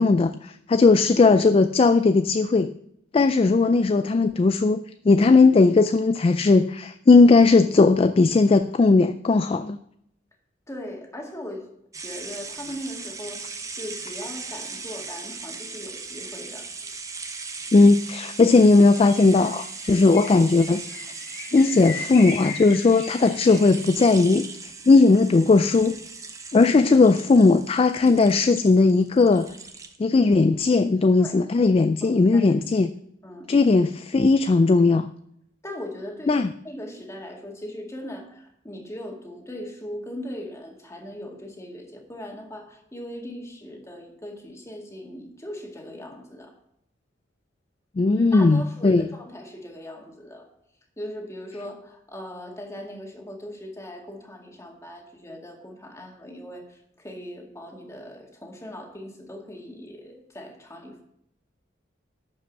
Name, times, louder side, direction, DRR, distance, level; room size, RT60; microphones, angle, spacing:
voice 1, 0.0-2.7 3.1-9.8 17.7-20.8 21.5-24.5 24.9-25.9 26.5-29.5 30.0-32.9 33.5-35.1 36.3-36.5 48.0-49.0, left 3 dB, 30° left, 11 dB, 0.3 m, -18 dB
voice 2, 10.7-11.7 12.0-16.7 19.9-20.1 31.2-31.4 32.0-32.6 33.2-33.5 35.6-46.5 48.2-50.5 51.0-61.0, left 1 dB, 15° left, 1 dB, 2.1 m, -39 dB
sound 1, 11.9-30.0, right 4 dB, 20° right, 0.9 m, -39 dB
sound 2, 18.4-23.9, left 4 dB, 75° left, 3.3 m, -39 dB
11.5 x 5.3 x 7.1 m, 0.73 s
head